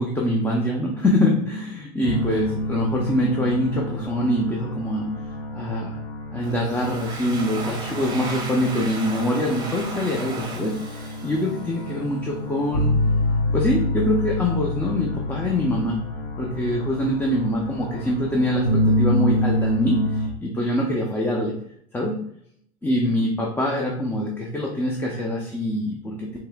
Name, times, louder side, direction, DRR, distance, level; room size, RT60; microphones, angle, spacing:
voice 1, 0.0-5.1 5.5-6.0 6.3-12.9 13.5-16.0 16.4-21.5 21.9-22.2 22.8-26.4, left 1 dB, 10° left, -1 dB, 0.6 m, -24 dB
sound 1, 2.0-20.3, left 1 dB, 75° left, 1.1 m, -27 dB
Domestic sounds home sounds, 6.4-12.1, right 3 dB, 25° right, 1.0 m, -36 dB
4.8 x 2.9 x 2.3 m, 0.66 s
supercardioid pair, 105°, 17 cm